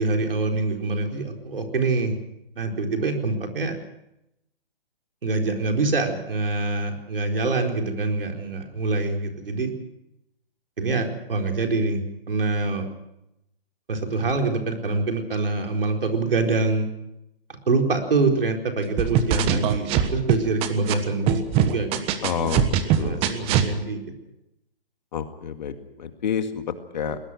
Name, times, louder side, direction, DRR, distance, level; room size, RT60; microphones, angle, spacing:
voice 1, 0.0-2.2 2.6-3.8 5.2-9.7 10.8-12.9 13.9-16.9 17.7-22.0 23.0-24.1, right 3 dB, 70° right, 3 dB, 4.4 m, -25 dB
sound 1, 19.0-20.9 21.3-23.7, right 9 dB, 20° right, 1.4 m, -21 dB
voice 2, 22.2-23.5 25.1-26.6 26.9-27.2, left 7 dB, 50° left, 8 dB, 2.1 m, -29 dB
22.0 x 20.0 x 6.2 m, 0.85 s
figure-of-eight pair, 140°, 29 cm